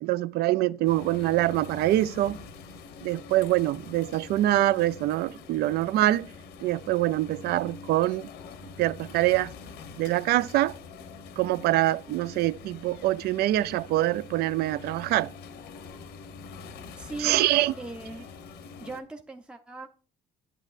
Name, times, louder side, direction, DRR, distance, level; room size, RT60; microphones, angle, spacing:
voice 1, 0.0-2.4 3.0-6.3 6.6-8.3 8.8-9.5 10.0-10.7 11.4-15.3 17.2-17.7, right 15 dB, 70° right, 0.4 m, -24 dB
sound 1, 0.8-19.0, left 4 dB, 80° left, 0.9 m, -45 dB
voice 2, 16.9-17.4 17.8-18.2 18.5-19.9, right 2 dB, 5° right, 0.6 m, -39 dB
9.3 x 7.7 x 2.5 m
cardioid pair, 110°, 17 cm